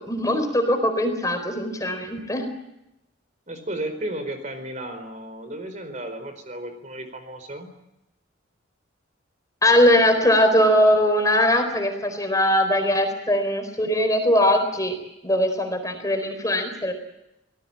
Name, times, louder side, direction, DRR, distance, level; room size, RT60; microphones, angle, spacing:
voice 1, 0.0-2.5 9.6-15.0 15.2-16.9, left 1 dB, 15° left, 6 dB, 4.2 m, -20 dB
voice 2, 3.5-7.7, right 1 dB, 40° right, 8 dB, 4.5 m, -34 dB
26.5 x 18.5 x 8.8 m, 0.90 s
head